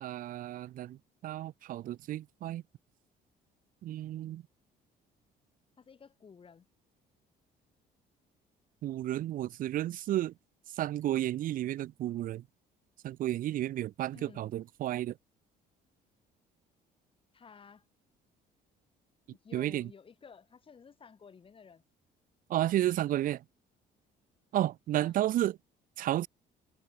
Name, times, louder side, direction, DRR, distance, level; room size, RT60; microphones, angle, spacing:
voice 1, 0.0-2.6 3.8-4.4 8.8-10.3 10.7-12.4 13.0-15.2 19.5-19.9 22.5-23.4 24.5-25.6 26.0-26.3, right 13 dB, 55° right, 0.5 m, -32 dB
voice 2, 5.8-6.7 14.1-14.5 17.3-17.8 19.3-21.8 24.9-25.1, left 6 dB, 30° left, 2.0 m, -54 dB
cardioid pair, 110°, 17 cm